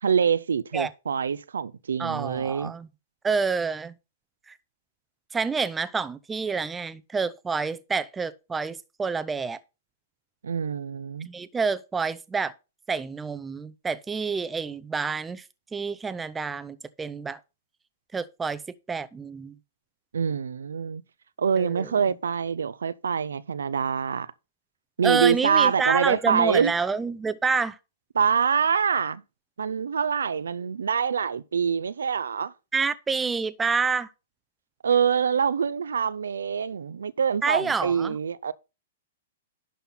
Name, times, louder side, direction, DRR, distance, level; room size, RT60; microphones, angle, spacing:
voice 1, 0.0-2.7 10.4-11.3 20.1-21.0 21.4-24.3 25.0-26.7 28.1-29.2 29.6-32.5 34.8-38.5, right 7 dB, 85° right, 0.5 m, -25 dB
voice 2, 2.0-2.9 3.2-3.9 4.5-4.6 5.3-9.6 11.3-12.5 12.9-15.4 15.7-17.4 18.1-18.6 18.9-19.5 21.6-21.9 25.0-27.8 32.7-34.1 37.4-38.2, right 5 dB, 15° right, 0.6 m, -28 dB
11.0 x 4.2 x 5.7 m
hypercardioid pair, 125°, 0 cm